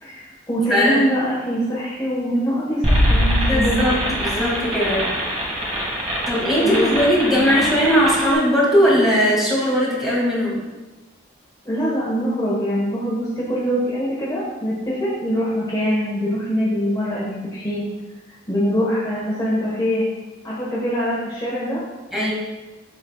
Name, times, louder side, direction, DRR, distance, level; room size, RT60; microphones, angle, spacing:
voice 1, 0.0-4.1 6.1-6.3 6.6-6.9 7.2-7.7 11.6-17.8 18.5-20.1 20.4-21.8, equal, 20° left, -8 dB, 1.3 m, -23 dB
voice 2, 0.7-1.1 3.5-5.1 6.3-10.6 22.1-22.3, equal, ahead, -6 dB, 2.1 m, -19 dB
sound 1, 2.8-8.3, equal, 35° right, 1.7 m, -22 dB
12.0 x 4.3 x 2.3 m, 1.2 s
head